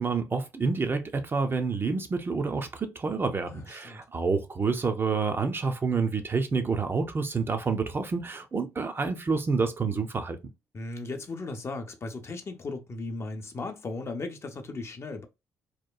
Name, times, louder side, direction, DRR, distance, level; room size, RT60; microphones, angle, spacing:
voice 1, 0.0-10.4, right 4 dB, 30° right, 0.5 m, -28 dB
voice 2, 3.5-4.0 10.7-15.3, left 3 dB, 35° left, 0.6 m, -36 dB
2.9 x 2.2 x 2.2 m
hypercardioid pair, 50°, 7 cm